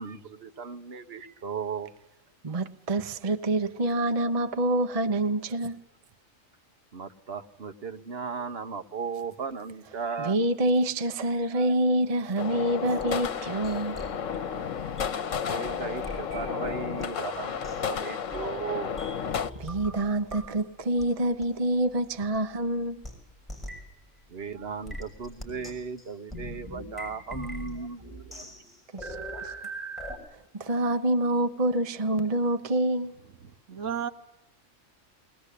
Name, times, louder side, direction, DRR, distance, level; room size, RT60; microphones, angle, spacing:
voice 1, 0.0-1.9 3.2-3.3 3.9-4.3 6.9-10.4 11.5-11.7 15.4-18.9 24.3-28.0 28.3-28.5, right 5 dB, 50° right, 1.4 m, -36 dB
voice 2, 2.4-5.8 10.2-14.1 19.6-23.0 28.9-29.2 29.4-29.5 30.5-33.1, right 1 dB, 30° right, 0.9 m, -26 dB
sound 1, 12.4-19.5, left 7 dB, 70° left, 1.3 m, -32 dB
sound 2, 12.6-17.0 17.3-20.6 21.0-21.1 21.4-21.5 22.3-22.4 23.0-23.1 23.5-23.9 24.8-30.2, equal, ahead, 6.5 m, -42 dB
voice 3, 33.4-34.1, right 8 dB, 70° right, 1.4 m, -33 dB
21.0 x 20.5 x 8.3 m
omnidirectional pair, 1.4 m